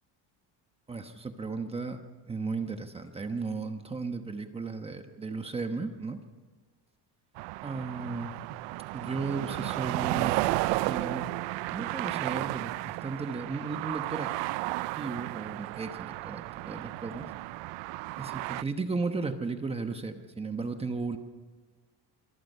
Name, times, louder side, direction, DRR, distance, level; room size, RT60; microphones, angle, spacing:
voice 1, 0.9-2.0 2.3-6.2 7.6-8.3 8.9-10.4 10.9-11.3 11.7-14.3 14.9-17.3 18.2-21.2, right 4 dB, 15° right, 6 dB, 1.1 m, -35 dB
sound 1, 7.4-18.6, right 21 dB, 80° right, 0.6 m, -33 dB
25.5 x 23.5 x 5.5 m, 1.4 s
cardioid pair, 175°, 42 cm